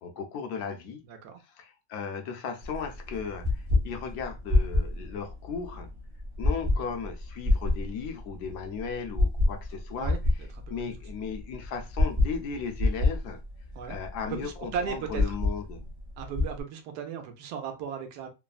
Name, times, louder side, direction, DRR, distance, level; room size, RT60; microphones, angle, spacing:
voice 1, 0.0-1.0 1.4-5.9 6.4-10.2 10.7-13.4 13.9-15.8, left 6 dB, 75° left, 1.0 m, -36 dB
voice 2, 1.1-1.4 6.7-6.9 10.0-10.9 13.8-14.0 14.3-15.4 16.2-18.3, right 7 dB, 75° right, 1.2 m, -36 dB
sound 1, 2.6-16.6, left 2 dB, 40° right, 0.4 m, -29 dB
3.2 x 2.1 x 2.3 m
omnidirectional pair, 1.8 m